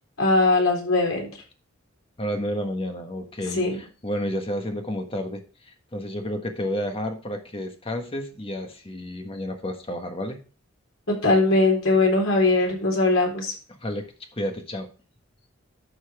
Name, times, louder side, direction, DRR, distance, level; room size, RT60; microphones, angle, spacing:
voice 1, 0.2-1.3 3.5-3.8 11.1-13.5, left 2 dB, 85° left, 0 dB, 4.0 m, -20 dB
voice 2, 2.2-10.4 13.8-14.9, equal, 30° left, 4 dB, 1.5 m, -31 dB
11.5 x 5.9 x 3.6 m, 0.37 s
head